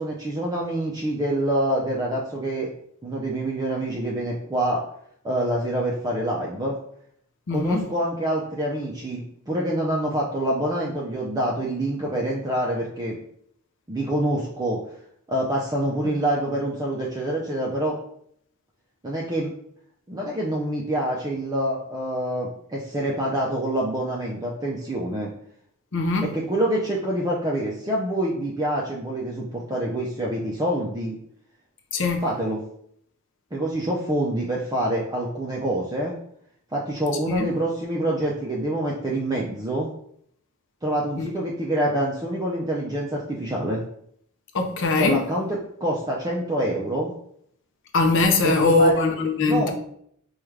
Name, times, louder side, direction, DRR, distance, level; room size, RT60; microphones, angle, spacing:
voice 1, 0.0-2.7 3.0-4.8 5.2-6.8 7.5-13.2 13.9-14.8 15.3-18.0 19.0-19.5 20.1-25.3 26.2-31.2 32.2-32.6 33.5-36.1 36.7-39.9 40.8-43.8 44.9-47.1 48.4-49.0 49.4-49.7, right 1 dB, 15° right, 0.4 m, -26 dB
voice 2, 7.5-7.9 25.9-26.3 31.9-32.3 37.3-37.5 41.2-41.3 44.5-45.2 47.9-49.7, left 3 dB, 55° left, 0.6 m, -21 dB
4.8 x 2.3 x 3.2 m
head